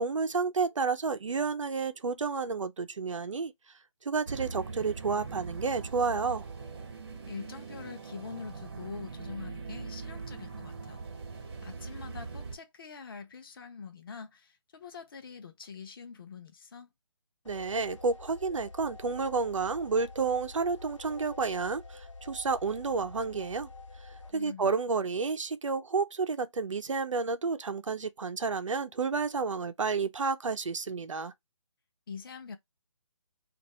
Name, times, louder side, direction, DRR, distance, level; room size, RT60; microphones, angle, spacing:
voice 1, 0.0-3.5 4.0-6.5 17.5-23.7 24.0-31.3, right 4 dB, 85° right, 0.7 m, -31 dB
sound 1, 4.3-12.6, right 4 dB, 50° right, 1.0 m, -41 dB
voice 2, 7.3-11.0 11.6-16.9 24.3-24.7 32.1-32.6, left 5 dB, 45° left, 0.8 m, -44 dB
sound 2, 17.4-24.3, left 3 dB, 75° left, 1.0 m, -48 dB
2.7 x 2.6 x 4.1 m
hypercardioid pair, 165°, 16 cm